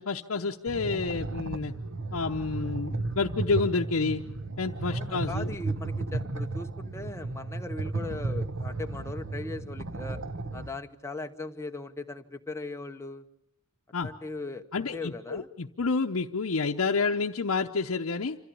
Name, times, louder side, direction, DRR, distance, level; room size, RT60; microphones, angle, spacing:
voice 1, 0.0-1.7 2.1-4.2 4.6-5.6 13.9-14.1 14.7-18.4, left 4 dB, 70° left, 1 dB, 0.8 m, -29 dB
sound 1, 0.7-10.7, right 2 dB, 60° right, 1.1 m, -34 dB
voice 2, 4.9-10.2 10.5-13.2 14.0-15.5, left 2 dB, 15° left, 6 dB, 1.0 m, -39 dB
27.0 x 14.5 x 8.6 m, 0.81 s
head